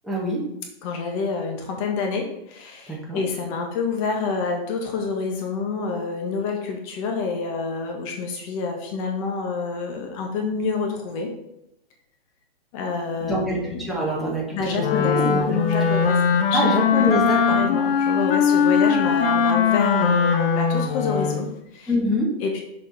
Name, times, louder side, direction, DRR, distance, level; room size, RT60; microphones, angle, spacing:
voice 1, 0.0-0.4 2.9-3.2 13.2-15.5 15.8-15.9 16.5-17.6 21.9-22.3, equal, ahead, -5 dB, 1.7 m, -25 dB
voice 2, 0.8-11.3 12.7-13.8 14.5-16.2 16.5-16.7 16.9-17.0 17.5-21.9 22.4-22.6, left 4 dB, 35° left, 2 dB, 1.7 m, -28 dB
Wind instrument woodwind instrument, 14.8-21.5, left 6 dB, 60° left, 1.0 m, -20 dB
7.0 x 5.2 x 5.0 m, 0.81 s
hypercardioid pair, 155°, 31 cm